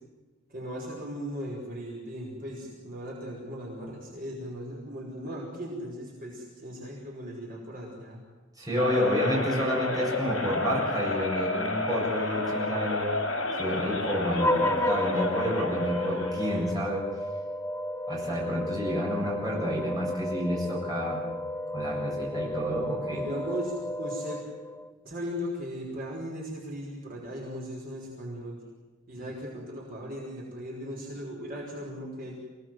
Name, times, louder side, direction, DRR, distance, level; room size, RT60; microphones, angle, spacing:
voice 1, 0.5-8.2 9.7-9.9 23.1-24.5 25.0-28.6 29.1-32.4, equal, 45° right, -2 dB, 5.4 m, -38 dB
voice 2, 8.6-13.1 13.6-17.0 18.1-21.2 21.7-23.2, equal, 20° right, -4 dB, 7.7 m, -30 dB
sound 1, 8.8-16.7, left 2 dB, 70° left, 4.5 m, -31 dB
sound 2, 14.4-24.9, left 1 dB, 10° left, 0.6 m, -32 dB
25.5 x 18.5 x 7.9 m, 1.3 s
head